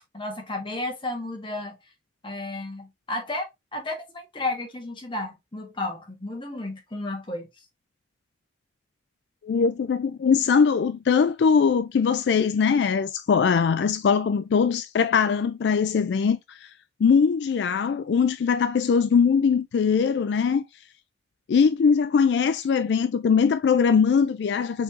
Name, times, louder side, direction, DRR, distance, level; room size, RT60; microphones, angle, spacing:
voice 1, 0.1-1.8 2.2-3.4 3.7-7.5, left 2 dB, 30° left, 1.3 m, -32 dB
voice 2, 9.4-16.7 17.0-20.6 21.5-24.8, left 6 dB, 70° left, 0.3 m, -21 dB
4.6 x 4.1 x 2.5 m
head